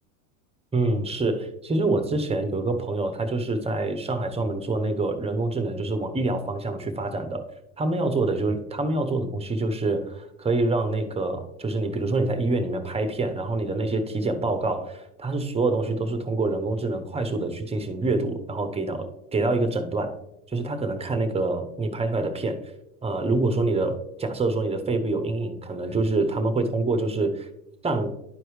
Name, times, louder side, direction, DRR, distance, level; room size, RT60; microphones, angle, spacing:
voice 1, 0.7-7.4 7.8-20.2 20.5-22.7 23.0-27.5 27.8-28.1, right 2 dB, 15° right, 7 dB, 0.9 m, -26 dB
11.5 x 4.6 x 3.2 m, 0.84 s
hypercardioid pair, 100°, 44 cm